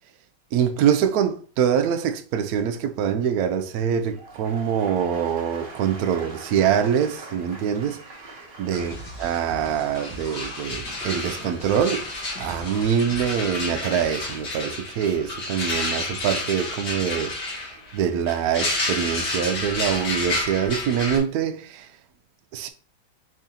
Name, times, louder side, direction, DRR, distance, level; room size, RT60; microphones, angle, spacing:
voice 1, 0.5-8.2 8.6-12.1 12.4-21.9 22.5-22.7, right 8 dB, 90° right, 0.8 m, -24 dB
sound 1, 3.9-20.0 20.3-20.7, right 2 dB, 40° right, 0.8 m, -46 dB
sound 2, 8.7-14.4, equal, 70° left, 1.9 m, -40 dB
sound 3, 9.6-9.7 9.9-21.2, left 2 dB, 90° left, 2.9 m, -30 dB
5.0 x 3.7 x 2.7 m
omnidirectional pair, 2.2 m